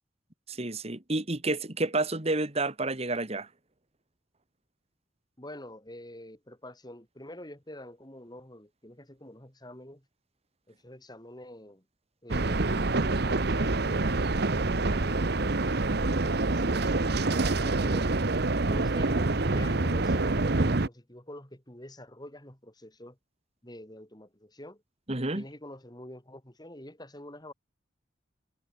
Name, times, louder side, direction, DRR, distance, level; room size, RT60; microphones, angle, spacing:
voice 1, 0.5-3.5 25.1-25.4, right 2 dB, 30° right, 1.9 m, -30 dB
voice 2, 5.4-10.1 10.7-11.8 12.2-15.2 15.7-18.1 18.6-23.2 23.6-24.8 25.3-27.5, left 1 dB, 20° left, 4.4 m, -47 dB
sound 1, 12.3-20.9, right 2 dB, 55° right, 1.0 m, -26 dB
head